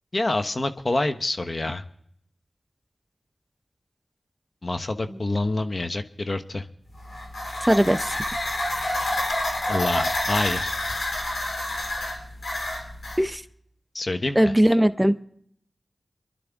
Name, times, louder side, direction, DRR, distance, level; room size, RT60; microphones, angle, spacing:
voice 1, 0.1-1.8 4.6-6.7 9.7-10.7 13.9-14.5, left 2 dB, 50° left, 8 dB, 1.0 m, -27 dB
sound 1, 7.0-13.2, left 1 dB, 85° left, 3.7 m, -28 dB
voice 2, 7.6-8.3 13.2-13.4 14.4-15.1, equal, 10° right, 11 dB, 0.6 m, -19 dB
23.5 x 11.5 x 3.6 m, 0.67 s
cardioid pair, 40°, 0 cm